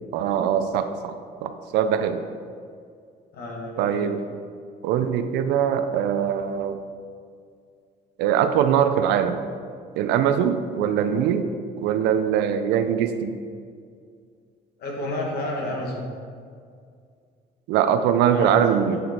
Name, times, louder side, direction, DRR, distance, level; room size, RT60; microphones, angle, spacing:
voice 1, 0.1-1.2 1.4-2.2 3.8-4.2 4.8-6.8 8.2-9.4 10.0-11.5 11.8-13.4 17.7-19.0, right 8 dB, 85° right, 9 dB, 0.5 m, -22 dB
voice 2, 3.3-4.1 14.8-16.1 18.3-19.0, left 1 dB, 70° left, -1 dB, 1.7 m, -31 dB
8.2 x 4.1 x 4.4 m, 2.2 s
cardioid pair, 110°, 17 cm